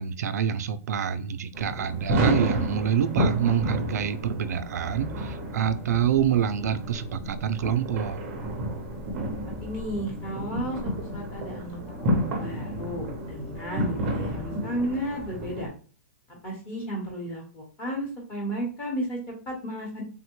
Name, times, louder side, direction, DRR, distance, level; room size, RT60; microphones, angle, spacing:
voice 1, 0.0-8.2, right 9 dB, 90° right, 0.3 m, -26 dB
sound 1, 1.5-15.7, equal, 20° right, 0.5 m, -31 dB
sound 2, 4.7-15.0, left 2 dB, 45° left, 0.5 m, -44 dB
voice 2, 9.4-15.7 16.3-20.0, right 1 dB, 15° left, 0.9 m, -34 dB
3.4 x 2.1 x 2.9 m
hypercardioid pair, 180°, 9 cm